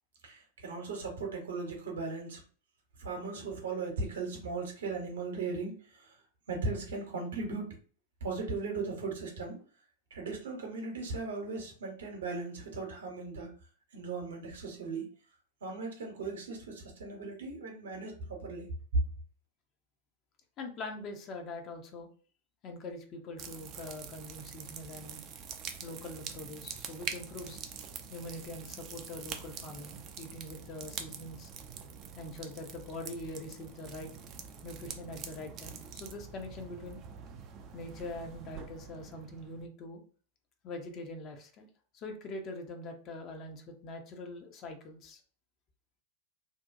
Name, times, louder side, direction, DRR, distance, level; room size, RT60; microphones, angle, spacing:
voice 1, 0.2-2.4 3.0-6.2 6.5-7.8 8.2-9.6 10.1-13.5 13.9-15.1 15.6-18.7, right 3 dB, 65° right, 2 dB, 0.8 m, -38 dB
voice 2, 20.6-22.1 22.6-25.2 25.8-27.6 28.1-31.5 32.1-34.1 34.6-37.0 37.7-40.0 40.6-41.7 41.9-45.2, left 2 dB, 35° left, 4 dB, 0.6 m, -43 dB
sound 1, 23.4-39.7, right 7 dB, 35° right, 0.4 m, -45 dB
2.6 x 2.1 x 2.5 m, 0.42 s
figure-of-eight pair, 90°, 0 cm